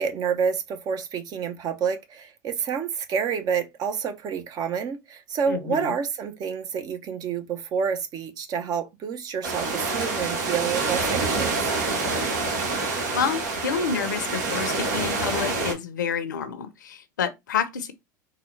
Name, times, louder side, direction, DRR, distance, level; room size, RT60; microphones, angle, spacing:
voice 1, 0.0-11.7, right 6 dB, 40° right, 0.8 m, -28 dB
voice 2, 5.5-5.9 13.1-17.9, left 7 dB, 85° left, 0.6 m, -28 dB
sound 1, 9.4-15.7, right 3 dB, 70° right, 1.4 m, -27 dB
3.9 x 2.3 x 3.2 m
hypercardioid pair, 90°, 10 cm